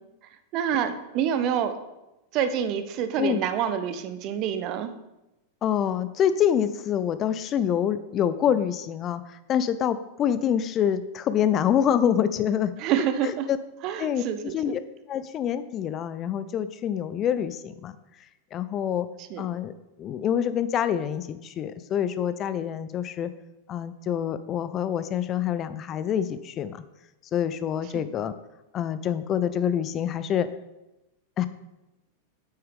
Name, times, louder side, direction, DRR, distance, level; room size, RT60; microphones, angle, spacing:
voice 1, 0.5-1.7 2.3-4.9 12.8-13.5 13.8-14.6 19.3-19.4 27.9-28.0, right 9 dB, 40° right, 10 dB, 0.8 m, -27 dB
voice 2, 5.6-9.2 9.5-12.7 13.2-13.6 14.0-14.8 15.1-17.9 18.5-19.1 19.4-19.7 20.0-23.3 23.7-26.8 27.3-28.3 28.7-30.5 31.4-31.5, left 9 dB, 30° left, 13 dB, 0.4 m, -26 dB
8.9 x 8.6 x 3.4 m, 0.97 s
figure-of-eight pair, 90°, 0 cm